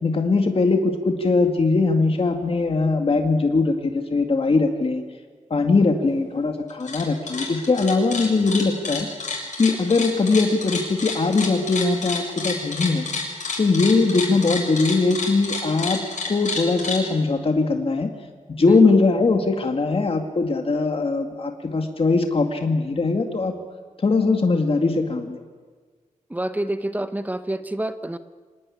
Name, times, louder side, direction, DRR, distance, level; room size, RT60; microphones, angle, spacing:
voice 1, 0.0-5.0 5.5-9.1 9.6-13.0 13.6-18.1 18.5-23.6 24.0-25.4, left 3 dB, 45° left, 5 dB, 2.1 m, -21 dB
sound 1, 6.7-7.0 7.3-17.0, left 4 dB, 70° left, 7.2 m, -29 dB
voice 2, 18.6-19.0 26.3-28.2, right 1 dB, 10° right, 11 dB, 1.0 m, -28 dB
25.5 x 18.5 x 9.9 m, 1.5 s
wide cardioid pair, 130°, 13 cm